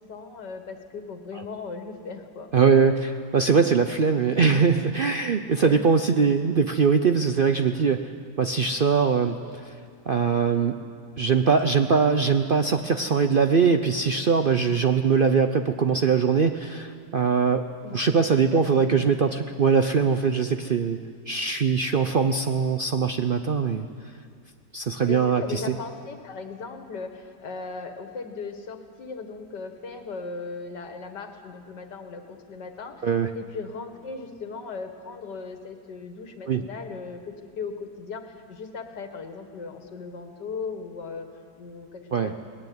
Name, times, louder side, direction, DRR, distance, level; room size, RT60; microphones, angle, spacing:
voice 1, 0.1-2.5 5.6-5.9 17.8-18.2 18.5-19.1 25.1-33.1 33.3-41.3 41.6-42.4, left 4 dB, 75° left, 6 dB, 2.3 m, -37 dB
voice 2, 2.5-8.1 8.4-9.8 10.1-10.8 11.2-21.0 21.3-23.8 24.7-25.7 33.0-33.3 36.5-36.6 42.1-42.3, right 5 dB, 70° right, 7 dB, 0.5 m, -22 dB
19.5 x 16.5 x 9.5 m, 2.1 s
omnidirectional pair, 1.9 m